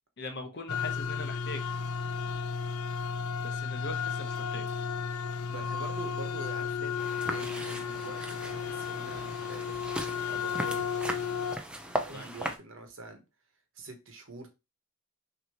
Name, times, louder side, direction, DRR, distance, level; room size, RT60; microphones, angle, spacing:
voice 1, 0.2-1.7 3.4-4.7 12.1-12.5, left 2 dB, 50° left, 6 dB, 0.9 m, -41 dB
sound 1, 0.7-11.6, left 6 dB, 90° left, 0.5 m, -33 dB
voice 2, 5.5-10.9 11.2-13.2 13.7-14.5, right 2 dB, 60° right, 4 dB, 1.1 m, -45 dB
sound 2, 7.0-12.6, right 1 dB, 5° right, 0.5 m, -38 dB
6.2 x 2.8 x 2.9 m, 0.26 s
head